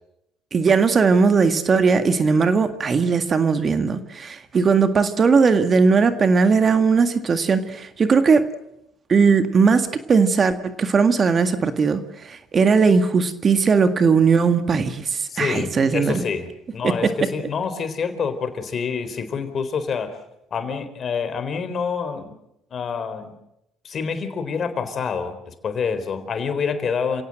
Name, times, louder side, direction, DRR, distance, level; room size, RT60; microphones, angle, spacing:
voice 1, 0.5-8.5 9.1-16.2 16.8-17.1, right 5 dB, 40° right, 9 dB, 1.8 m, -18 dB
voice 2, 15.3-16.5 16.7-20.2 20.5-22.3 22.7-23.3 23.8-27.2, left 6 dB, 45° left, 10 dB, 3.9 m, -27 dB
28.5 x 17.0 x 7.8 m, 0.84 s
hypercardioid pair, 70°, 0 cm